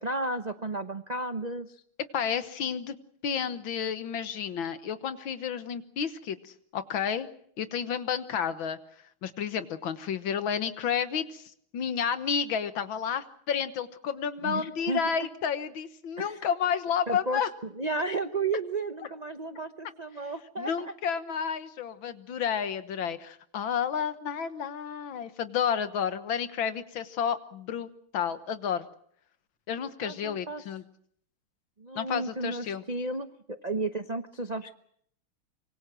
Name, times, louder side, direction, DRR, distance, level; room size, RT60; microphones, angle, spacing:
voice 1, 0.0-1.8 14.4-15.0 16.2-16.4 17.1-17.5 17.8-20.9 30.0-30.6 31.8-34.8, right 2 dB, 70° right, 7 dB, 0.4 m, -33 dB
voice 2, 2.1-3.0 3.2-7.3 7.6-8.8 9.2-11.4 11.7-17.5 20.6-28.9 29.7-30.8 32.0-32.8, left 7 dB, 65° left, 11 dB, 1.9 m, -31 dB
25.0 x 24.0 x 6.1 m, 0.66 s
omnidirectional pair, 2.4 m